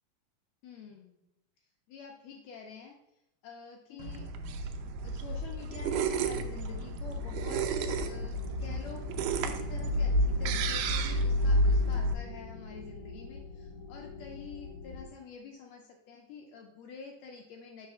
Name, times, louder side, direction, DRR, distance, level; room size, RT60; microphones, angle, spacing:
voice 1, 0.6-1.2 1.9-3.0 3.4-4.3 5.0-9.0 9.4-17.9, left 5 dB, 85° left, 1 dB, 1.5 m, -47 dB
sound 1, 4.0-12.1, right 1 dB, 80° right, 2.1 m, -30 dB
sound 2, 7.1-15.1, left 5 dB, 65° left, 1.3 m, -44 dB
4.4 x 4.1 x 5.6 m, 0.86 s
omnidirectional pair, 3.8 m